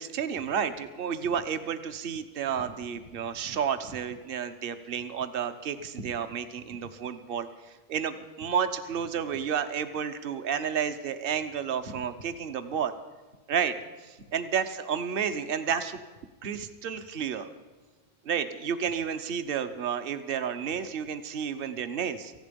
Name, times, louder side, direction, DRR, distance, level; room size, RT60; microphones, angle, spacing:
voice 1, 0.0-7.5 7.9-12.9 13.5-13.8 14.0-16.0 16.4-17.5 18.2-22.3, right 7 dB, 55° right, 9 dB, 1.1 m, -31 dB
18.5 x 15.0 x 5.2 m, 1.3 s
omnidirectional pair, 1.2 m